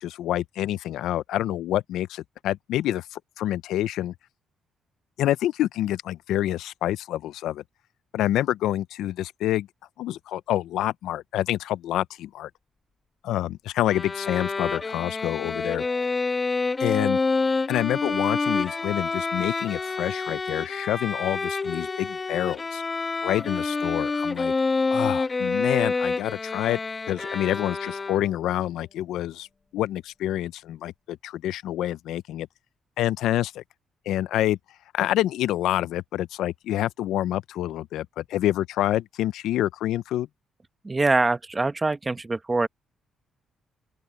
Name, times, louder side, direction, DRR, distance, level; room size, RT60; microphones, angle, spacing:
voice 1, 0.0-4.1 5.2-7.6 8.1-9.7 10.0-12.5 13.2-15.8 16.8-17.2 17.7-22.8 23.2-24.5 24.9-26.8 27.1-29.5 29.7-32.5 33.0-33.6 34.1-34.6 34.9-40.3, left 13 dB, 85° left, 0.5 m, -27 dB
Bowed string instrument, 13.9-28.5, left 3 dB, 30° left, 1.2 m, -28 dB
voice 2, 40.8-42.7, right 3 dB, 20° right, 1.3 m, -24 dB
open air
cardioid pair, 90°, 0 cm